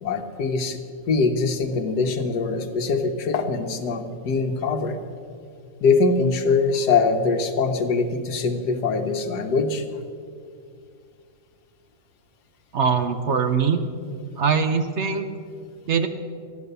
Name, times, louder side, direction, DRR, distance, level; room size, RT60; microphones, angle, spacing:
voice 1, 0.0-0.8 1.1-5.0 5.8-9.8, left 4 dB, 90° left, 6 dB, 1.6 m, -23 dB
voice 2, 12.7-13.8 14.4-15.3 15.9-16.1, right 6 dB, 55° right, 8 dB, 0.9 m, -22 dB
14.0 x 11.0 x 6.7 m, 2.3 s
omnidirectional pair, 1.7 m